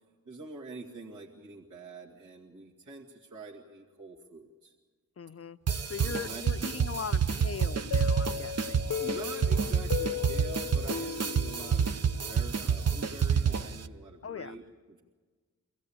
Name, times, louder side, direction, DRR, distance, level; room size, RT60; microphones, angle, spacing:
voice 1, 0.3-4.8 5.7-6.4 9.0-15.0, right 3 dB, 70° right, -3 dB, 2.2 m, -46 dB
voice 2, 5.2-8.8 14.2-14.5, left 6 dB, 45° left, 13 dB, 0.6 m, -40 dB
sound 1, 5.7-13.9, right 6 dB, 50° right, 0.8 m, -29 dB
sound 2, 7.9-12.6, left 8 dB, 80° left, 0.9 m, -36 dB
24.5 x 16.5 x 8.7 m, 1.5 s
wide cardioid pair, 85°, 33 cm